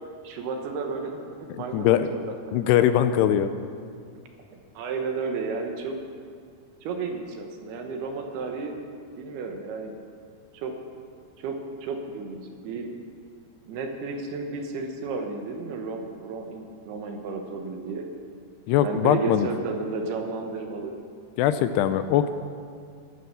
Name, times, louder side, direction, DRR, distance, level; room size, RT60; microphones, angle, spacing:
voice 1, 0.2-2.7 4.7-6.0 6.8-8.8 9.2-10.0 10.5-10.7 11.4-12.9 13.7-18.1 18.8-21.0, right 4 dB, 70° right, 4 dB, 3.0 m, -33 dB
voice 2, 1.7-2.1 2.5-3.5 18.7-19.5 21.4-22.3, left 11 dB, 80° left, 11 dB, 2.5 m, -21 dB
14.5 x 11.5 x 6.8 m, 2.2 s
omnidirectional pair, 4.9 m